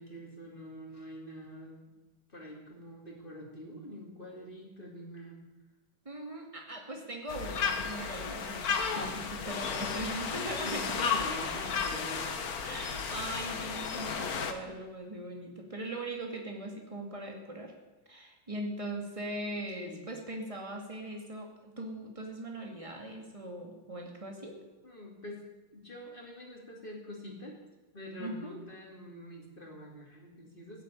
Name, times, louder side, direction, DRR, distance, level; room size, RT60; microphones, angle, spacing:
voice 1, 0.0-1.8 2.3-5.4 8.8-9.3 10.6-12.3 19.8-20.1 24.8-25.4 25.7-27.6 27.9-30.8, equal, 25° left, -1 dB, 2.8 m, -45 dB
voice 2, 6.0-10.8 12.6-17.7 18.1-24.6 28.2-28.6, right 1 dB, 15° right, 1 dB, 2.4 m, -40 dB
sound 1, 7.3-14.5, left 6 dB, 50° left, 1.6 m, -33 dB
16.0 x 8.2 x 8.9 m, 1.1 s
omnidirectional pair, 2.2 m